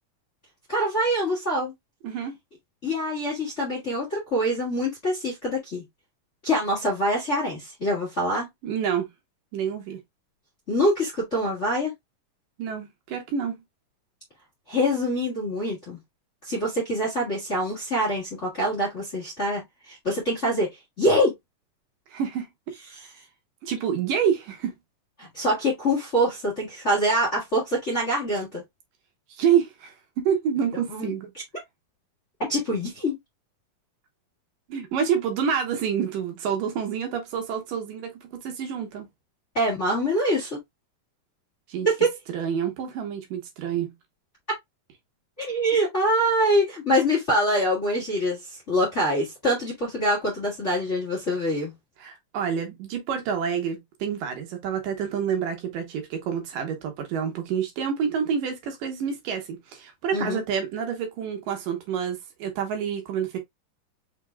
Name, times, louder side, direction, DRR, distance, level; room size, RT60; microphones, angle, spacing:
voice 1, 0.7-1.7 2.8-5.8 6.4-8.5 10.7-11.9 14.7-16.0 16.4-20.7 21.0-21.3 25.2-28.6 30.9-31.1 32.5-33.2 39.5-40.6 41.8-42.2 45.4-48.4 48.7-51.7 60.1-60.4, equal, 30° left, 1.4 m, -25 dB
voice 2, 2.0-2.3 8.6-9.1 9.5-10.0 12.6-13.6 22.1-22.5 23.6-24.7 29.3-31.3 34.7-39.1 41.7-41.9 42.3-43.9 52.0-63.4, right 7 dB, 75° right, 2.8 m, -28 dB
5.9 x 3.5 x 2.2 m
omnidirectional pair, 3.9 m